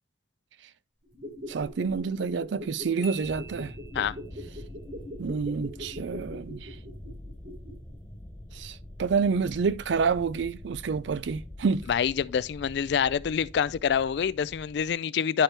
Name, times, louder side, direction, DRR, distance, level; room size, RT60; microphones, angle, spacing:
sound 1, 1.0-7.9 8.2-8.3, left 1 dB, 60° right, 4.4 m, -42 dB
voice 1, 1.5-3.7 5.2-6.8 8.5-11.9, right 5 dB, 75° right, 0.4 m, -28 dB
Marimba xylophone, 3.0-4.5, right 4 dB, 45° left, 1.0 m, -46 dB
sound 2, 3.2-14.9, left 1 dB, 15° left, 1.4 m, -45 dB
voice 2, 11.9-15.4, left 7 dB, 65° left, 0.3 m, -26 dB
10.5 x 4.5 x 3.2 m
head